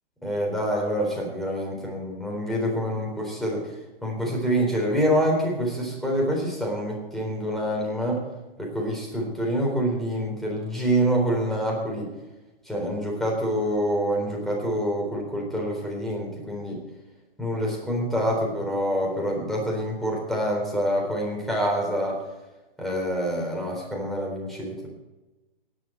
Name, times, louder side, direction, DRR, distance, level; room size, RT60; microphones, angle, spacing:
voice 1, 0.2-3.6 4.0-8.2 8.6-12.1 12.7-16.8 17.4-22.2 22.8-24.9, equal, ahead, -2 dB, 3.9 m, -26 dB
19.0 x 8.5 x 4.5 m, 1.1 s
hypercardioid pair, 130°, 30 cm